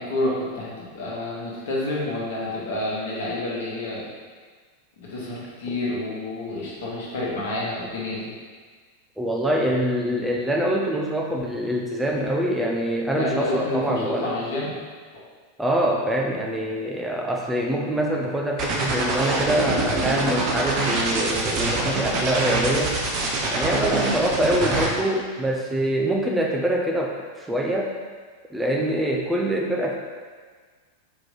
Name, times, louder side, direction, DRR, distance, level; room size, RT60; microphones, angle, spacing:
voice 1, 0.0-4.1 5.0-8.3 13.1-14.7, left 1 dB, 60° left, -6 dB, 1.2 m, -29 dB
voice 2, 9.2-14.3 15.6-23.0 23.5-28.0 28.5-29.9, right 1 dB, 5° right, -1 dB, 0.4 m, -24 dB
sound 1, 18.6-24.9, right 3 dB, 35° right, 0.7 m, -24 dB
4.4 x 3.0 x 3.7 m, 1.5 s
figure-of-eight pair, 90°, 0 cm